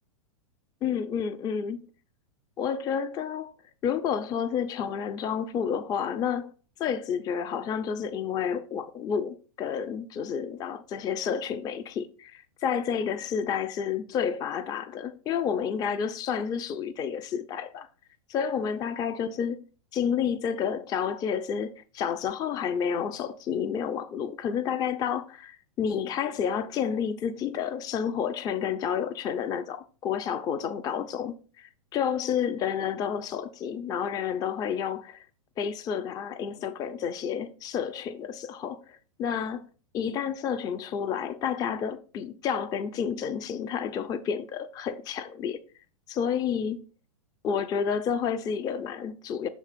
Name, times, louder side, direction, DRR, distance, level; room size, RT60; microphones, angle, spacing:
voice 1, 0.8-1.8 2.6-3.5 3.8-6.5 6.8-17.9 18.3-19.6 19.9-35.3 35.6-39.7 39.9-45.6 46.1-46.8 47.4-49.5, left 7 dB, 20° left, 0.4 m, -30 dB
6.5 x 3.0 x 4.9 m
hypercardioid pair, 120°, 17 cm